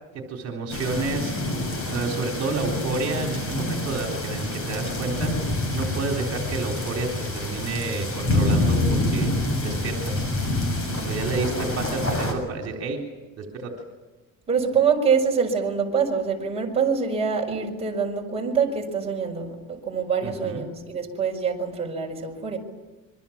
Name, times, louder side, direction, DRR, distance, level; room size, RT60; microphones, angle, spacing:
voice 1, 0.1-1.4 1.9-9.3 9.6-10.2 11.1-13.0 13.4-13.8 20.2-20.6, right 4 dB, 50° right, 1 dB, 3.8 m, -30 dB
sound 1, 0.7-12.3, left 2 dB, 40° left, 6.9 m, -27 dB
voice 2, 14.5-22.6, right 6 dB, 20° right, -1 dB, 5.2 m, -25 dB
27.0 x 23.5 x 7.3 m, 1.2 s
cardioid pair, 165°, 33 cm